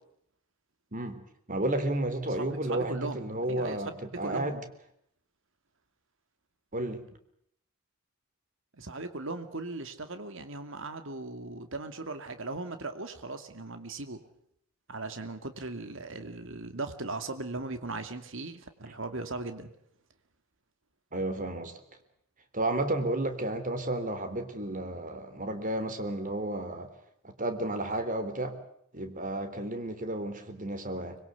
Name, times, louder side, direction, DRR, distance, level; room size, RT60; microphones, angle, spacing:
voice 1, 0.9-1.2 1.5-4.6 6.7-7.0 21.1-21.7 22.5-26.9 27.2-28.5 28.9-31.2, right 1 dB, 40° right, 8 dB, 3.6 m, -32 dB
voice 2, 2.3-3.9 4.2-4.6 8.7-14.2 14.9-19.7, right 2 dB, 65° right, 8 dB, 2.4 m, -38 dB
25.5 x 22.0 x 8.3 m, 0.73 s
head